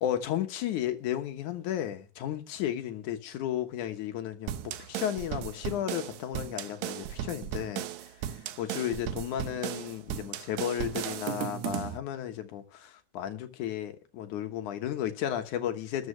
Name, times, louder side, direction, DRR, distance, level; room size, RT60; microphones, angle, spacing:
voice 1, 0.0-7.9 8.6-16.1, left 11 dB, 85° left, 2.7 m, -33 dB
sound 1, 4.5-12.0, right 11 dB, 75° right, 2.0 m, -36 dB
13.5 x 6.0 x 7.2 m
omnidirectional pair, 3.4 m